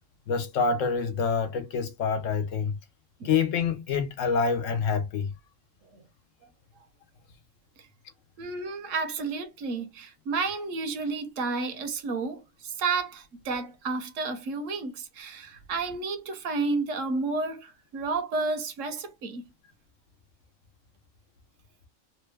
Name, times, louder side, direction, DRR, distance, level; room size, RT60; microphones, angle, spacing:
voice 1, 0.3-2.8 3.2-5.3, left 5 dB, 70° left, 1.1 m, -26 dB
voice 2, 8.4-19.4, right 4 dB, 75° right, 1.0 m, -31 dB
3.2 x 2.2 x 3.2 m
omnidirectional pair, 1.4 m